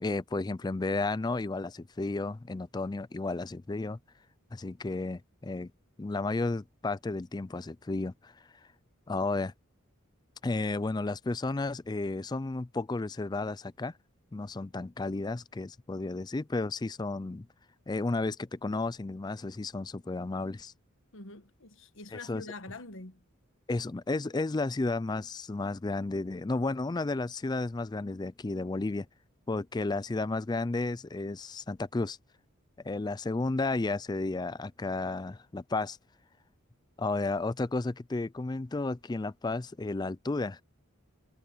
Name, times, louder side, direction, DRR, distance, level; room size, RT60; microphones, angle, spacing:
voice 1, 0.0-4.0 4.5-5.7 6.0-8.3 9.1-9.5 10.4-13.9 14.3-17.5 17.9-20.7 22.3-22.4 23.7-29.1 29.5-32.2 32.8-36.0 37.0-40.6, left 3 dB, 20° left, 0.4 m, -32 dB
voice 2, 21.1-23.3, left 3 dB, 65° left, 1.4 m, -45 dB
head